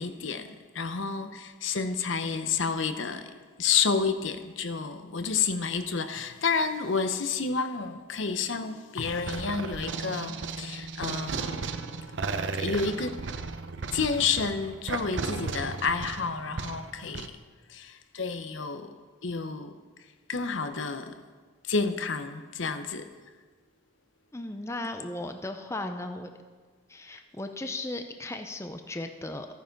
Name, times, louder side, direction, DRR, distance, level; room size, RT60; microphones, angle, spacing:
voice 1, 0.0-11.6 12.6-13.2 13.9-17.3 17.7-18.9 19.2-19.7 20.3-21.2 21.7-23.1, left 5 dB, 70° left, 0.8 m, -30 dB
sound 1, 9.0-17.3, right 4 dB, 65° right, 0.7 m, -35 dB
voice 2, 24.3-26.3 26.9-29.5, left 2 dB, 15° left, 0.5 m, -36 dB
14.0 x 9.2 x 5.3 m
head